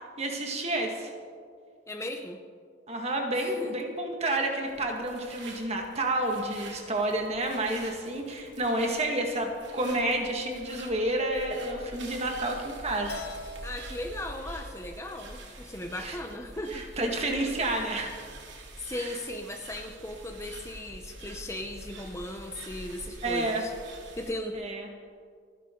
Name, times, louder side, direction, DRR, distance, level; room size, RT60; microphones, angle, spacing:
voice 1, 0.2-1.1 2.9-13.2 16.0-16.2 16.7-18.2 18.9-19.2 23.2-23.6 24.5-24.9, right 1 dB, 35° right, 2 dB, 1.9 m, -30 dB
voice 2, 1.9-2.4 3.3-3.7 13.6-16.9 18.8-23.7 24.1-24.6, left 1 dB, 15° left, 3 dB, 0.8 m, -37 dB
sound 1, 4.6-24.3, right 2 dB, 70° right, 2.5 m, -46 dB
Keyboard (musical), 13.1-15.4, left 3 dB, 55° left, 1.1 m, -45 dB
28.0 x 11.0 x 3.9 m, 2.1 s
head